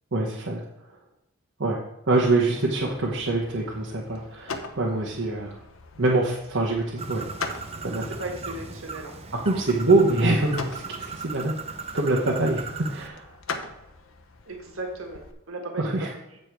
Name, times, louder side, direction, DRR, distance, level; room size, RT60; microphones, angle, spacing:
voice 1, 0.1-0.6 1.6-1.8 2.1-5.6 6.0-7.3 7.8-8.1 9.3-11.6 11.9-13.3 15.8-16.1, right 2 dB, 60° right, -3 dB, 1.1 m, -24 dB
sound 1, 2.8-15.3, left 4 dB, 75° left, 0.9 m, -41 dB
Bird, 7.0-13.1, right 4 dB, 30° right, 0.6 m, -38 dB
voice 2, 8.0-9.2 14.5-16.4, right 2 dB, 75° right, 2 dB, 1.7 m, -36 dB
8.4 x 6.7 x 4.6 m, 0.93 s
head